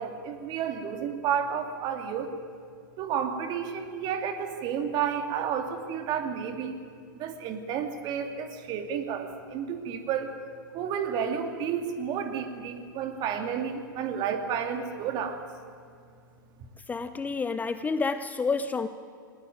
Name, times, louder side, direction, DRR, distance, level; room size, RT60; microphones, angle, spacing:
voice 1, 0.0-2.3 3.0-6.8 7.1-10.3 10.7-15.4 16.6-16.7, right 7 dB, 40° right, 7 dB, 2.6 m, -31 dB
voice 2, 16.9-18.9, left 4 dB, 15° left, 12 dB, 0.7 m, -29 dB
20.5 x 19.0 x 9.1 m, 2.3 s
hypercardioid pair, 105°, 11 cm